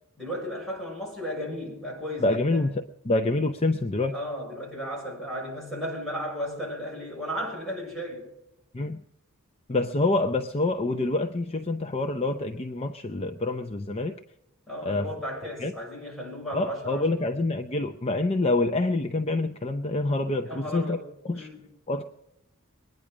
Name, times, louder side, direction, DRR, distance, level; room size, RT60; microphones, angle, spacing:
voice 1, 0.2-2.7 4.1-8.3 14.7-17.2 20.4-21.6, equal, ahead, 6.6 m, -35 dB
voice 2, 2.2-4.1 8.7-9.0 9.7-14.2 14.8-15.1 15.6-15.7 16.5-21.0 21.2-21.5 21.9-22.0, left 2 dB, 30° left, 0.6 m, -26 dB
22.0 x 10.0 x 6.1 m
head